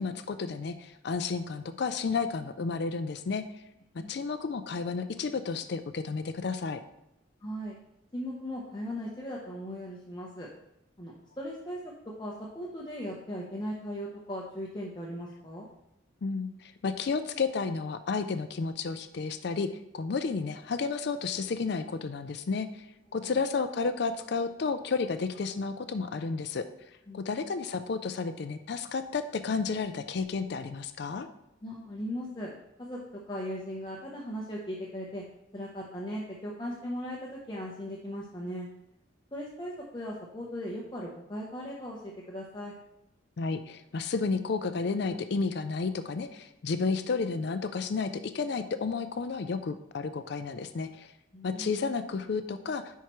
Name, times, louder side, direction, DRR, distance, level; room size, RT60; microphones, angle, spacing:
voice 1, 0.0-3.4 4.1-6.8 16.2-22.9 23.1-26.6 27.1-31.3 43.4-51.1 51.4-53.0, left 4 dB, 55° left, 10 dB, 0.4 m, -32 dB
voice 2, 7.4-7.8 8.1-10.5 11.0-11.8 12.2-15.7 23.2-23.4 27.1-27.4 31.6-32.5 32.8-33.0 33.3-35.2 35.5-38.7 39.3-42.7 51.3-51.7, equal, 20° left, -4 dB, 0.8 m, -38 dB
10.0 x 4.6 x 3.1 m, 0.85 s
head